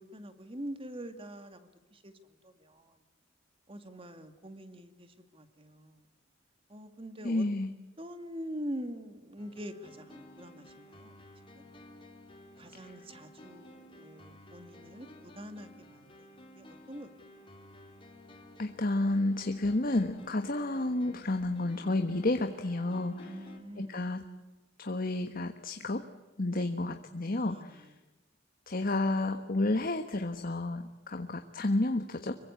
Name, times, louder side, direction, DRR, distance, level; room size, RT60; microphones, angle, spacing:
voice 1, 0.0-2.1 2.4-3.0 3.7-6.0 6.7-7.5 8.0-11.2 11.6-11.7 12.6-16.3 16.6-17.1 23.2-24.1 26.5-26.9 27.4-28.0, equal, 30° right, 8 dB, 2.4 m, -44 dB
voice 2, 7.2-7.7 12.7-12.9 18.6-23.3 23.8-24.2 24.8-26.0 26.4-27.9 28.7-32.3, left 2 dB, 50° left, 7 dB, 1.4 m, -31 dB
sound 1, 9.4-23.6, left 1 dB, 25° left, 3.7 m, -53 dB
26.0 x 23.5 x 8.3 m, 1.1 s
head